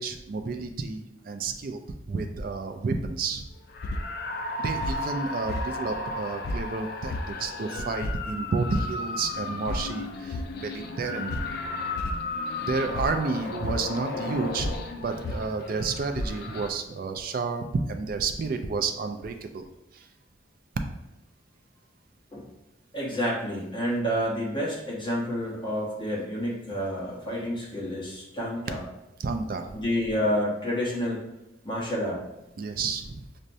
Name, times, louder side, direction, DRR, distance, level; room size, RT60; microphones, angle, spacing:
voice 1, 0.0-1.8 2.1-3.5 4.6-11.5 12.6-14.8 15.0-19.6 19.9-20.1 29.2-29.8 32.6-33.3, right 4 dB, 45° right, 7 dB, 0.3 m, -31 dB
sound 1, 3.7-16.7, left 2 dB, 50° left, 0.3 m, -33 dB
voice 2, 22.9-28.8 29.7-31.2 31.6-32.2, equal, 25° left, -6 dB, 1.1 m, -29 dB
6.1 x 2.1 x 2.6 m, 0.94 s
head